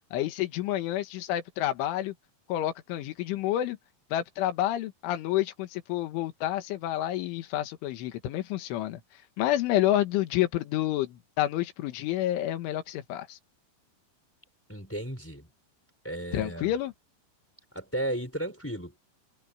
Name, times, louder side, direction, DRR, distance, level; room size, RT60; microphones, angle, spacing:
voice 1, 0.1-2.1 2.5-3.8 4.1-9.0 9.4-13.4 16.3-16.9, left 13 dB, 85° left, 4.0 m, -29 dB
voice 2, 14.7-15.5 16.0-16.7 17.7-19.0, right 1 dB, 5° left, 3.7 m, -34 dB
open air
omnidirectional pair, 5.4 m